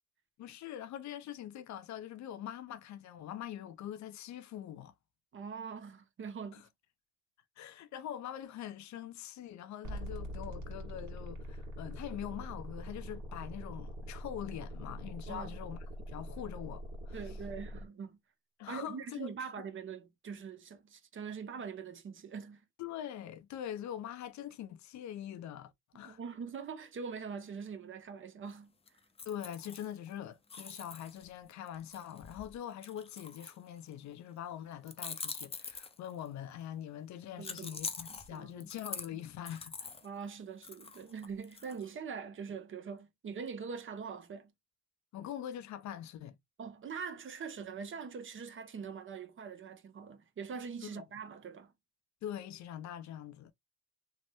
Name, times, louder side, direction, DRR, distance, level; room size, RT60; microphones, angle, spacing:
voice 1, 0.4-4.9 6.5-6.6 7.6-17.2 18.6-19.7 22.8-26.2 29.2-39.7 45.1-46.4 50.8-51.0 52.2-53.5, left 10 dB, 70° left, 0.5 m, -43 dB
voice 2, 5.3-6.7 15.3-15.6 17.1-18.2 18.7-22.6 26.0-28.7 37.4-37.8 38.3-38.7 40.0-44.5 46.6-51.7, right 6 dB, 40° right, 0.7 m, -43 dB
sound 1, 9.8-17.9, equal, 70° right, 1.7 m, -43 dB
sound 2, 28.9-30.1 30.5-33.9 34.9-36.3 37.4-40.1 40.6-41.9, left 4 dB, 20° left, 0.5 m, -44 dB
3.2 x 2.0 x 2.9 m
cardioid pair, 90°, 30 cm